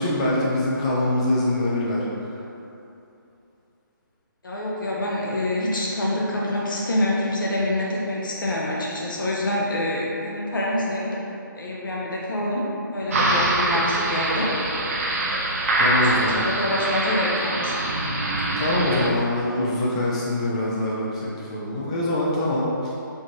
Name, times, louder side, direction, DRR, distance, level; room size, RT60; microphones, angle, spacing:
voice 1, 0.0-2.4 15.8-16.5 18.6-22.9, left 1 dB, 20° left, -5 dB, 0.3 m, -24 dB
voice 2, 4.4-11.2 11.5-14.5 16.0-17.8, left 1 dB, 70° left, -4 dB, 0.7 m, -26 dB
sound 1, 13.1-19.1, right 2 dB, 45° right, 0.5 m, -24 dB
4.4 x 2.4 x 3.0 m, 2.7 s
figure-of-eight pair, 155°, 11 cm